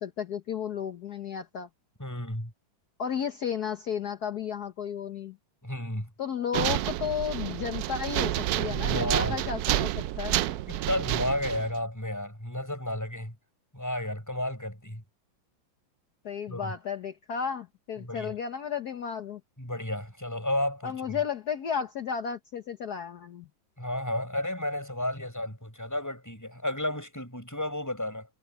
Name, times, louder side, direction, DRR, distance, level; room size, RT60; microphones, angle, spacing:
voice 1, 0.0-1.7 3.0-5.4 6.2-10.4 16.2-19.4 20.8-23.5, left 7 dB, 55° left, 1.5 m, -33 dB
voice 2, 2.0-2.5 5.6-6.1 8.4-9.4 10.5-13.3 13.7-15.0 16.5-16.7 18.0-18.3 19.6-21.2 23.8-28.3, left 1 dB, 10° left, 6.0 m, -32 dB
sound 1, 6.5-11.7, right 14 dB, 85° right, 0.8 m, -29 dB
omnidirectional pair, 2.2 m